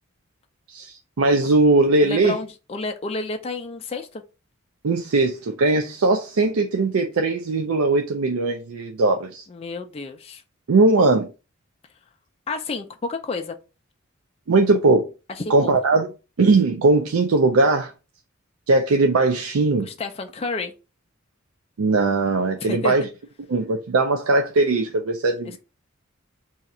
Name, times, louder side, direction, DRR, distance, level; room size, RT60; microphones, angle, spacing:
voice 1, 0.7-2.4 4.8-9.5 10.7-11.3 14.5-15.1 15.5-16.1 16.4-17.9 18.7-19.9 21.8-23.1 23.5-25.6, right 3 dB, 80° right, 0.5 m, -19 dB
voice 2, 2.0-4.2 9.5-10.4 12.5-13.6 15.4-15.7 19.8-20.7 22.6-22.9, left 3 dB, 30° left, 0.4 m, -30 dB
2.8 x 2.4 x 4.1 m
head